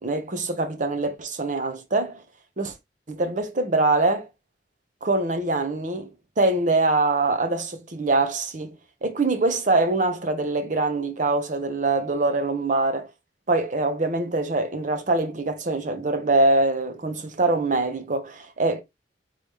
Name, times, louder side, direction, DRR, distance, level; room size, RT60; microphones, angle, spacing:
voice 1, 0.0-2.2 2.6-2.7 3.1-4.3 5.0-6.1 6.4-8.8 9.0-13.1 13.5-18.8, right 2 dB, 45° right, 0.8 m, -23 dB
3.9 x 3.2 x 3.4 m
head